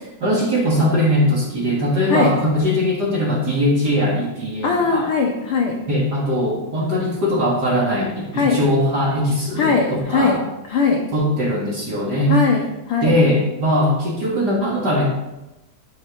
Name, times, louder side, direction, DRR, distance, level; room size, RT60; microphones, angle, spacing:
voice 1, 0.2-5.1 5.9-10.4 11.1-12.4 13.0-15.1, equal, 40° right, -4 dB, 1.8 m, -20 dB
voice 2, 4.6-5.8 8.3-8.6 9.6-10.4 10.7-11.0 12.3-13.2, left 4 dB, 70° left, 0 dB, 1.4 m, -19 dB
11.0 x 6.4 x 3.8 m, 0.97 s
omnidirectional pair, 3.6 m